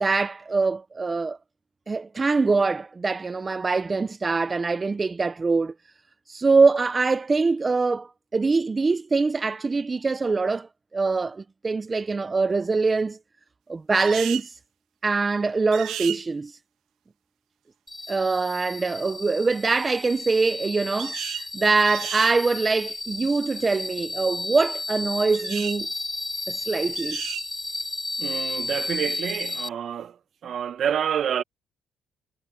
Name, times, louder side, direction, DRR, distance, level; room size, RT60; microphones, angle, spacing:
voice 1, 0.0-1.4 1.9-5.7 6.3-13.2 13.7-14.5 15.0-16.5 18.1-25.9 26.5-27.2, right 4 dB, 30° right, 0.6 m, -23 dB
sound 1, 14.0-14.5 15.7-16.2 21.0-21.5 21.9-22.3 25.3-25.8 26.9-27.5, right 11 dB, 85° right, 1.6 m, -33 dB
sound 2, 17.9-29.7, left 2 dB, 15° left, 1.9 m, -33 dB
voice 2, 28.2-30.2 30.4-31.4, right 8 dB, 60° right, 1.2 m, -28 dB
cardioid pair, 90°, 0 cm